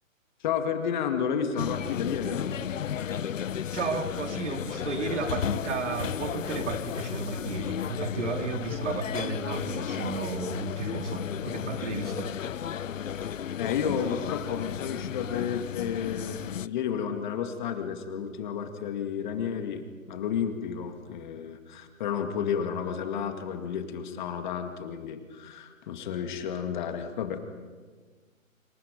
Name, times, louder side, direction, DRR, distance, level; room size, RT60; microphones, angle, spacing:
voice 1, 0.4-2.5 13.6-27.4, left 7 dB, 35° left, 6 dB, 2.1 m, -31 dB
sound 1, 1.6-16.7, left 8 dB, 70° left, 0.8 m, -34 dB
voice 2, 3.7-12.3, right 4 dB, 60° right, 6 dB, 2.7 m, -33 dB
28.5 x 27.0 x 5.2 m, 1.5 s
hypercardioid pair, 150°, 40 cm